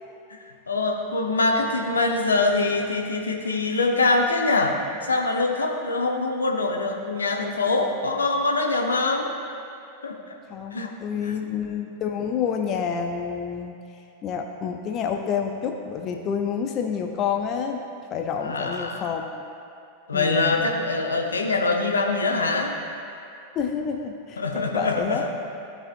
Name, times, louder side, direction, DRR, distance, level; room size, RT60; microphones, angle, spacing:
voice 1, 0.3-9.3 10.0-10.2 10.7-10.9 11.2-11.3 18.4-19.1 20.1-22.8 24.4-25.3, left 3 dB, 75° left, 1 dB, 0.9 m, -24 dB
voice 2, 10.5-13.8 14.2-17.8 18.1-19.5 20.1-20.6 23.5-24.4 24.7-25.4, left 7 dB, 35° left, 4 dB, 0.5 m, -28 dB
15.5 x 5.5 x 2.5 m, 2.5 s
figure-of-eight pair, 90°, 0 cm